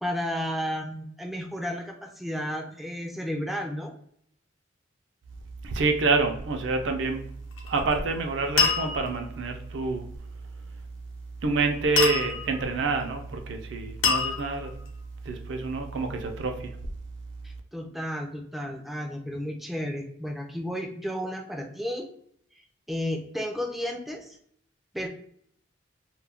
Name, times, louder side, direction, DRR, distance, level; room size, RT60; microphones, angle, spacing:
voice 1, 0.0-3.9 17.4-22.1 22.9-24.4 24.9-25.1, equal, ahead, 2 dB, 0.3 m, -32 dB
voice 2, 5.6-7.2 7.6-10.1 11.4-14.7 15.3-16.8, right 3 dB, 65° right, 4 dB, 0.5 m, -27 dB
sound 1, 7.5-7.9 8.6-9.3 12.0-12.7 14.0-14.9, left 5 dB, 80° left, 0.7 m, -26 dB
2.3 x 2.1 x 3.3 m, 0.67 s
head